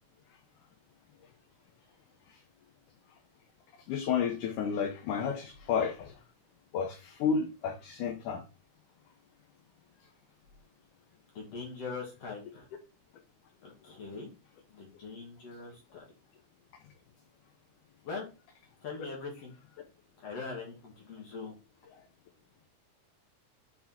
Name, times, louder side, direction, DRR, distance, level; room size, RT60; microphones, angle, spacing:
voice 1, 3.9-6.1 6.7-8.4, left 6 dB, 80° left, 2.4 m, -31 dB
voice 2, 11.3-12.7 13.6-14.3 14.7-16.0 18.0-18.3 18.8-19.5 20.2-21.5, left 4 dB, 55° left, 2.6 m, -41 dB
5.6 x 4.6 x 4.4 m
omnidirectional pair, 3.7 m